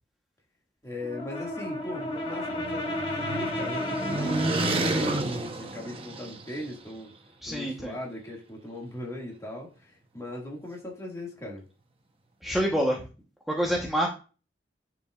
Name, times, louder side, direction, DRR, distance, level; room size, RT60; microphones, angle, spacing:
voice 1, 0.8-7.1 7.4-11.6, left 1 dB, 20° left, 2.0 m, -39 dB
Brass instrument, 1.0-5.2, left 1 dB, 35° left, 2.6 m, -33 dB
sound 1, 1.9-6.7, right 2 dB, 35° right, 0.9 m, -31 dB
voice 2, 7.4-7.9 12.4-13.0 13.5-14.1, equal, ahead, 1.0 m, -26 dB
9.9 x 4.8 x 2.4 m
head